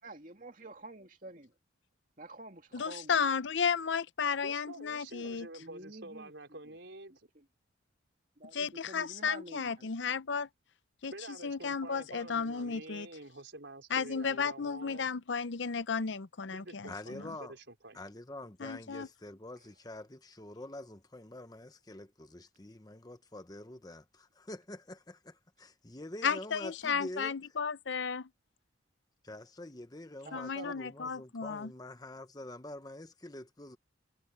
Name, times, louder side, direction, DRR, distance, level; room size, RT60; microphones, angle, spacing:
voice 1, 0.0-1.5 2.2-3.2 5.6-6.3 6.7-6.8 7.3-7.4 8.4-9.9 30.2-30.8, right 2 dB, 45° right, 2.8 m, -48 dB
voice 2, 2.7-5.5 8.5-10.5 11.0-11.1 11.4-13.1 13.9-17.3 18.6-19.1 26.2-28.3 30.3-31.7, left 6 dB, 70° left, 0.6 m, -33 dB
voice 3, 4.4-7.3 11.1-15.1 16.5-18.0, right 2 dB, 70° right, 4.9 m, -48 dB
voice 4, 16.9-17.5 17.9-27.4 29.2-33.8, left 1 dB, 20° left, 1.0 m, -46 dB
head